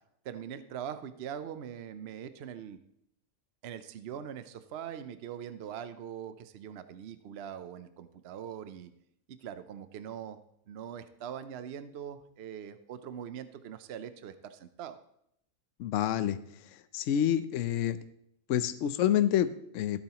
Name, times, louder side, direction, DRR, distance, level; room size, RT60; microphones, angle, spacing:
voice 1, 0.2-2.8 3.6-8.9 9.3-10.4 10.7-15.0, right 9 dB, 55° right, 11 dB, 0.8 m, -42 dB
voice 2, 15.8-16.4 16.7-18.0 18.5-20.0, left 10 dB, 65° left, 12 dB, 0.9 m, -28 dB
14.5 x 8.3 x 2.9 m, 0.74 s
omnidirectional pair, 1.5 m